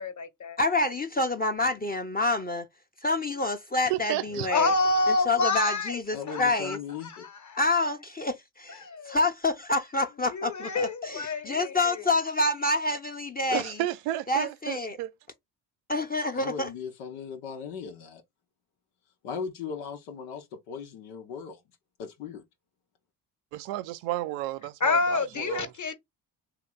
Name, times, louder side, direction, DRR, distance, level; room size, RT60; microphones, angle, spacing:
voice 1, 0.0-0.6 4.3-6.8 7.0-7.9 8.7-9.2 10.3-12.2 24.8-25.9, left 3 dB, 35° left, 1.1 m, -28 dB
voice 2, 0.6-2.7 3.0-4.7 5.3-6.8 7.5-13.8 14.3-15.0 15.9-16.7, left 2 dB, 20° left, 0.7 m, -27 dB
voice 3, 3.9-4.5 13.5-15.1 23.5-25.7, right 15 dB, 85° right, 0.6 m, -32 dB
voice 4, 6.1-7.2 16.3-18.2 19.2-21.6 22.0-22.4, left 6 dB, 85° left, 0.8 m, -38 dB
3.1 x 2.9 x 3.7 m
hypercardioid pair, 50°, 50 cm